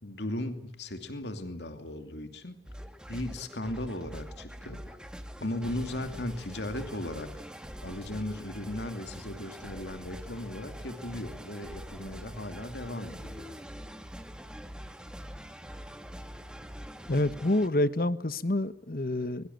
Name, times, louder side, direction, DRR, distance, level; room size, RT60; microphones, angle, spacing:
voice 1, 0.0-2.6 3.1-5.0 5.4-7.4 7.8-13.6, left 1 dB, 80° left, 2.7 m, -37 dB
sound 1, 2.6-17.7, equal, 5° right, 1.9 m, -44 dB
voice 2, 17.1-19.5, left 1 dB, 55° left, 1.2 m, -27 dB
24.0 x 23.0 x 9.4 m
head